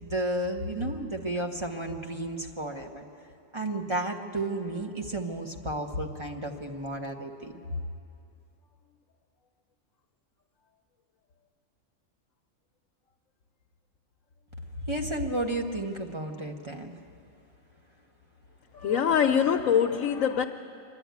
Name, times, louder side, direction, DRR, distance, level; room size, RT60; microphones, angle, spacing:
voice 1, 0.0-3.0 3.5-7.6 14.9-16.9, right 1 dB, 25° right, 2 dB, 1.1 m, -32 dB
voice 2, 18.7-20.4, left 8 dB, 75° left, 4 dB, 1.1 m, -24 dB
25.5 x 11.0 x 9.4 m, 2.6 s
omnidirectional pair, 1.4 m